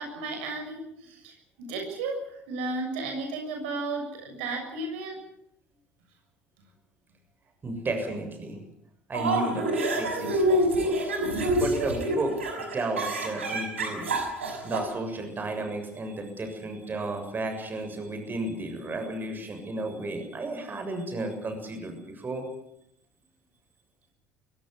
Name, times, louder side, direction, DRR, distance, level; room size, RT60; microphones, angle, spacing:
voice 1, 0.0-2.2 2.5-5.2, right 3 dB, 70° right, 3 dB, 7.1 m, -34 dB
voice 2, 7.6-8.6 9.1-11.2 11.5-12.4 12.7-14.1 14.6-22.5, right 2 dB, 30° right, 6 dB, 7.2 m, -33 dB
sound 1, 9.1-14.8, right 1 dB, 85° right, 5.8 m, -26 dB
24.5 x 16.5 x 9.8 m, 0.76 s
hypercardioid pair, 65°, 6 cm